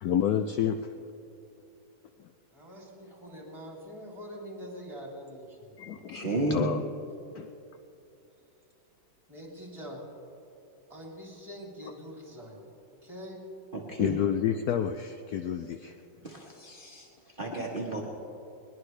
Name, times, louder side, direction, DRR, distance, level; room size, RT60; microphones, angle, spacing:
voice 1, 0.0-0.8 5.8-6.8 7.3-7.5 14.0-15.9, left 9 dB, 80° left, 7 dB, 0.8 m, -29 dB
voice 2, 2.5-5.9 9.3-10.0 10.9-12.6 13.0-13.4 17.5-17.6, equal, 15° right, -2 dB, 3.1 m, -44 dB
voice 3, 5.9-6.7 13.9-14.1 16.2-17.1 17.4-18.0, right 2 dB, 30° right, -2 dB, 1.4 m, -32 dB
21.5 x 20.0 x 3.3 m, 2.8 s
omnidirectional pair, 2.2 m